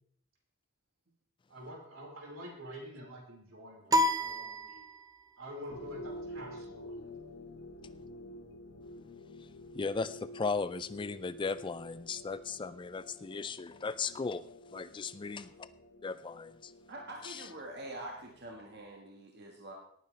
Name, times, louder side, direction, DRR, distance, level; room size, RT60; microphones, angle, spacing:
voice 1, 1.5-4.8 5.4-7.0 15.4-15.5, equal, 80° right, -2 dB, 4.7 m, -47 dB
sound 1, 3.9-5.3, left 1 dB, 20° right, 0.7 m, -30 dB
sound 2, 5.7-18.9, left 1 dB, 55° left, 1.2 m, -50 dB
voice 2, 9.8-14.4 14.7-15.5 16.0-16.5, left 4 dB, 25° left, 15 dB, 0.3 m, -36 dB
voice 3, 16.9-19.7, right 1 dB, 55° right, 0 dB, 1.6 m, -45 dB
18.5 x 9.3 x 3.3 m, 0.69 s
head